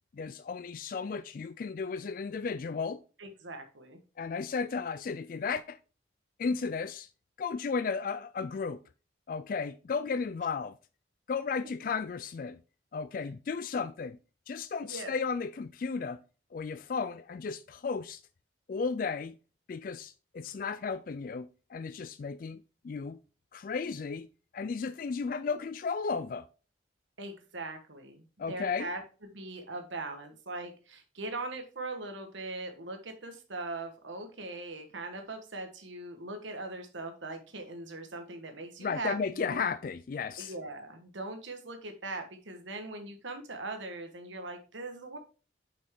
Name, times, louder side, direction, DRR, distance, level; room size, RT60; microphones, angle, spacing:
voice 1, 0.1-3.0 4.2-5.8 6.4-7.1 7.4-8.8 9.3-10.8 11.3-12.6 12.9-14.2 14.5-16.2 16.5-18.2 18.7-19.3 19.7-23.2 23.5-24.3 24.5-26.5 28.4-28.9 38.8-40.5, left 5 dB, 45° left, 0.3 m, -34 dB
voice 2, 3.2-4.0 14.8-15.2 27.2-39.6 40.4-45.2, right 2 dB, 80° right, 1.3 m, -40 dB
6.4 x 5.8 x 3.6 m
head